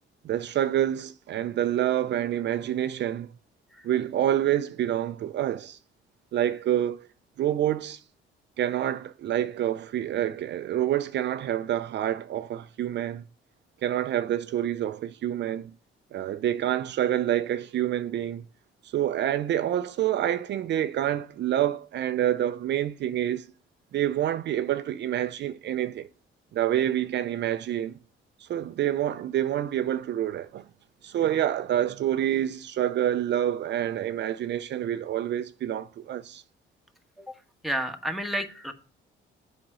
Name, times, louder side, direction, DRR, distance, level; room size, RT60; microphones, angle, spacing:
voice 1, 0.2-3.3 3.8-5.8 6.3-7.1 7.4-8.0 8.6-13.2 13.8-15.7 16.1-18.4 18.8-23.5 23.9-26.1 26.5-28.0 28.4-30.6 31.0-36.4, right 11 dB, 60° right, 0.5 m, -27 dB
voice 2, 37.6-38.7, equal, ahead, 1.2 m, -30 dB
7.8 x 5.0 x 5.4 m
cardioid pair, 90°, 20 cm